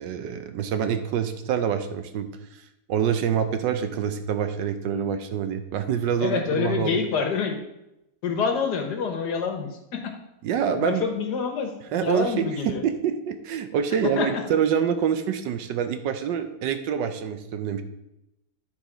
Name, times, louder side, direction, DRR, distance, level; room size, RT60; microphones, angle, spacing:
voice 1, 0.0-2.3 2.9-7.0 10.4-11.0 11.9-17.8, right 8 dB, 75° right, 8 dB, 1.3 m, -26 dB
voice 2, 6.2-7.6 8.2-10.1 10.8-12.8 14.2-14.4, left 5 dB, 65° left, 4 dB, 1.5 m, -27 dB
10.0 x 4.0 x 5.0 m, 0.87 s
omnidirectional pair, 2.1 m